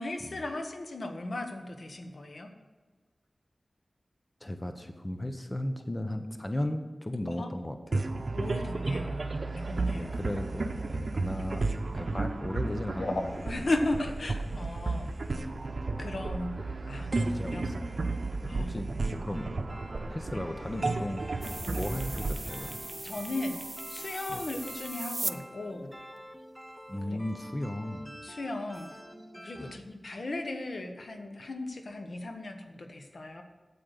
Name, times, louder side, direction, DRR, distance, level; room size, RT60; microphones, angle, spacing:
voice 1, 0.0-2.5 7.4-7.5 8.3-10.2 13.0-15.1 16.0-17.6 18.5-18.7 20.3-20.4 23.0-23.6 23.9-25.9 27.1-27.2 28.2-28.9 29.4-33.4, left 2 dB, 70° left, 5 dB, 1.3 m, -36 dB
voice 2, 4.4-8.1 9.9-13.7 14.8-15.0 17.2-17.7 18.4-19.5 20.1-21.3 21.7-22.8 24.3-24.4 26.9-28.2 29.6-29.7, left 1 dB, 25° left, 7 dB, 0.9 m, -36 dB
sound 1, 7.9-23.6, right 3 dB, 65° right, 0.9 m, -33 dB
sound 2, 19.3-29.8, equal, ahead, 1.0 m, -48 dB
sound 3, 21.4-25.3, right 2 dB, 40° right, 0.6 m, -39 dB
9.0 x 8.5 x 6.6 m, 1.3 s
wide cardioid pair, 50°, 0 cm